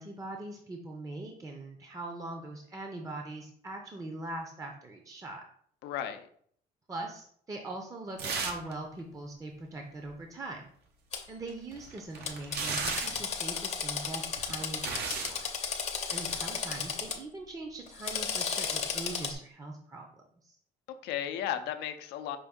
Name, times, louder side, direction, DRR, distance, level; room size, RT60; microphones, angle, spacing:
voice 1, 0.0-5.4 6.9-10.6 11.3-15.5 16.1-20.1 20.4-20.6, right 2 dB, 20° right, 2 dB, 0.6 m, -41 dB
voice 2, 5.8-6.3 20.9-22.4, left 10 dB, 90° left, 8 dB, 0.5 m, -35 dB
sound 1, 8.2-8.7 9.0-9.1 11.5-13.3 14.2-15.4 16.2-16.4, right 5 dB, 75° right, 0.8 m, -35 dB
Drill, 11.1-11.2 12.3-17.2 17.9-19.3, left 6 dB, 40° left, 0.6 m, -34 dB
5.3 x 2.6 x 3.6 m, 0.62 s
cardioid pair, 110°, 17 cm